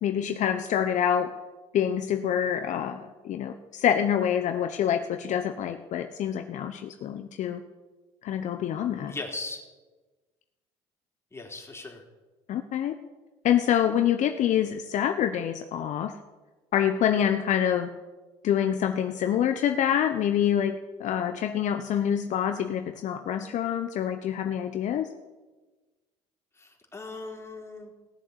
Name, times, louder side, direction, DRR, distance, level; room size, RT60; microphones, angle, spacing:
voice 1, 0.0-1.3 1.7-7.6 8.2-9.1 12.5-12.9 13.4-16.1 16.7-17.9 18.4-20.7 21.0-25.1, left 9 dB, 55° left, 7 dB, 0.9 m, -26 dB
voice 2, 9.1-9.6 11.3-12.0 26.5-27.9, left 3 dB, 20° left, 1 dB, 3.7 m, -38 dB
17.5 x 7.3 x 8.2 m, 1.2 s
hypercardioid pair, 65°, 15 cm